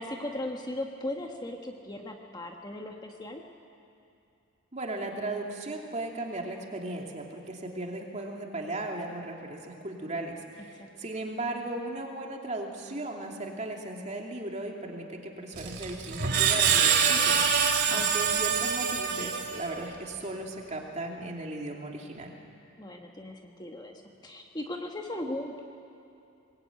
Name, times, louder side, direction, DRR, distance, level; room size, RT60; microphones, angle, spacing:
voice 1, 0.0-3.4 10.8-10.9 17.9-18.0 22.8-25.6, left 1 dB, 20° left, 2 dB, 1.5 m, -37 dB
voice 2, 4.7-17.4 17.9-22.3, right 2 dB, 30° right, 1 dB, 2.7 m, -36 dB
Screech, 15.6-19.9, right 7 dB, 55° right, 2.7 m, -25 dB
23.5 x 21.0 x 9.3 m, 2.6 s
head